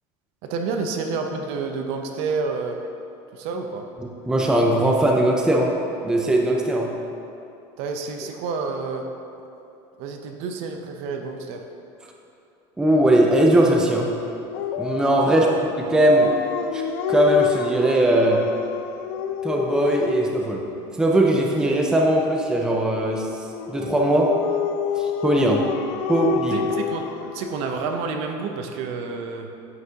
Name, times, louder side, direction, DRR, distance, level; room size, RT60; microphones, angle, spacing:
voice 1, 0.4-2.8 3.3-3.9 7.8-9.0 10.0-11.6 15.3-15.5 26.5-29.5, right 4 dB, 60° right, 4 dB, 0.7 m, -29 dB
voice 2, 4.3-5.7 6.0-6.9 12.8-14.1 14.8-15.5 15.9-16.3 16.7-16.8 17.1-18.4 19.4-20.6 21.0-23.3 23.7-24.3 25.0-25.6 26.1-26.6, right 1 dB, 5° right, 0 dB, 0.5 m, -19 dB
Dog, 14.5-20.3 23.5-28.1, left 8 dB, 90° left, 0.4 m, -29 dB
9.1 x 5.9 x 2.8 m, 2.9 s
cardioid pair, 155°, 12 cm